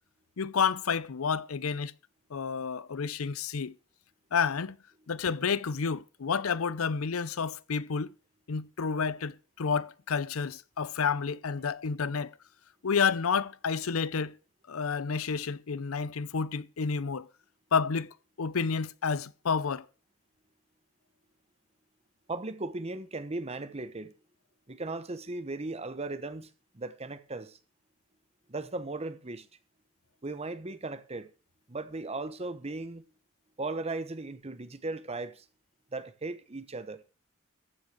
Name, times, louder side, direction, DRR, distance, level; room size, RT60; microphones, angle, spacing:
voice 1, 0.4-1.9 2.3-3.7 4.3-4.8 5.1-8.1 8.5-12.3 12.8-14.4 14.7-17.3 17.7-18.1 18.4-19.9, left 5 dB, 80° left, 0.6 m, -30 dB
voice 2, 22.3-24.1 24.7-27.6 28.5-29.5 30.2-31.3 31.7-33.0 33.6-35.4 35.9-37.0, right 2 dB, 30° right, 1.0 m, -37 dB
14.5 x 6.4 x 6.5 m
head